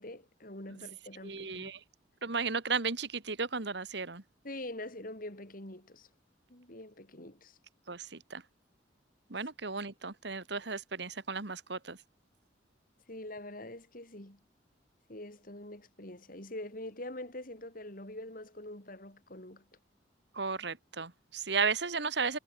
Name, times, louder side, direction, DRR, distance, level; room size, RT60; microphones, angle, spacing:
voice 1, 0.0-1.7 4.4-6.1 6.5-7.6 13.1-14.4 15.1-19.6, left 1 dB, 50° left, 5.2 m, -44 dB
voice 2, 1.2-1.8 2.2-4.2 7.9-8.4 9.3-12.0 20.3-22.4, right 5 dB, 65° right, 1.7 m, -34 dB
head